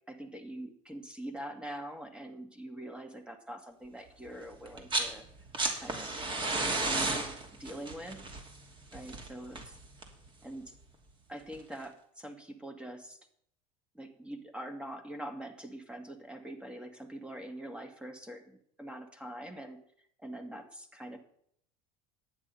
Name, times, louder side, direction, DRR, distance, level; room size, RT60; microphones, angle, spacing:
voice 1, 0.1-5.3 5.7-6.2 6.6-8.3 8.9-9.8 10.4-10.8 11.3-13.2 13.9-19.8 20.2-21.2, right 1 dB, 5° right, 5 dB, 2.0 m, -44 dB
sound 1, 4.7-5.1 5.4-10.3 11.5-11.6, right 2 dB, 30° right, 2.8 m, -33 dB
11.0 x 9.1 x 5.6 m, 0.67 s
supercardioid pair, 105°, 18 cm